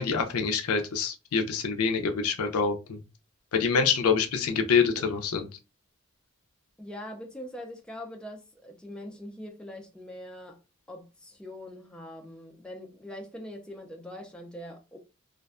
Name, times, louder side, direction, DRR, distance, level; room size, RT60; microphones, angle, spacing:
voice 1, 0.0-3.0 3.5-5.5, left 5 dB, 80° left, 0.5 m, -26 dB
voice 2, 6.8-10.6 10.9-15.0, left 1 dB, 5° left, 0.4 m, -42 dB
2.5 x 2.1 x 2.4 m
head